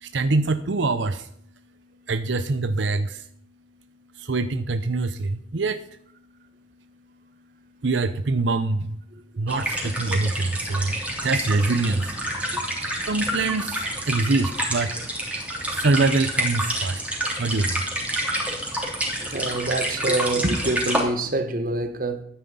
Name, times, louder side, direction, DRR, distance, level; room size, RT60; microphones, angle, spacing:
voice 1, 0.0-1.3 2.1-3.3 4.2-5.8 7.8-9.0 9.4-12.2 13.1-14.9 15.7-17.0 17.4-17.8, right 3 dB, 80° right, 0.7 m, -24 dB
sound 1, 9.5-21.0, right 1 dB, 5° right, 3.1 m, -28 dB
voice 2, 19.3-22.2, right 2 dB, 50° right, 1.4 m, -25 dB
13.0 x 9.9 x 5.5 m
head